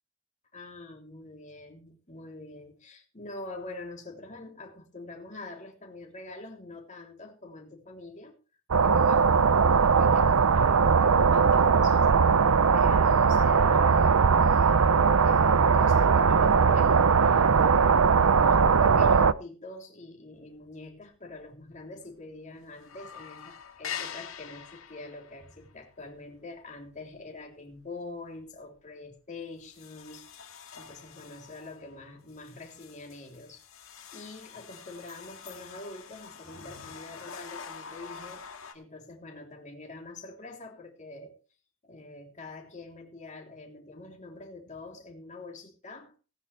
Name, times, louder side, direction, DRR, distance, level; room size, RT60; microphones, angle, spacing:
voice 1, 0.5-8.4 8.8-12.1 12.7-17.9 18.3-30.3 30.7-33.6 34.1-38.4 38.7-41.4 41.8-46.2, left 2 dB, 35° left, 3.3 m, -44 dB
sound 1, 8.7-19.3, right 5 dB, 85° right, 0.6 m, -20 dB
sound 2, 20.5-21.0 21.3-21.4 21.7-22.4 22.6-27.9 28.3-28.5 29.0-29.1 29.6-38.7, left 7 dB, 70° left, 1.9 m, -45 dB
18.5 x 9.9 x 3.3 m
head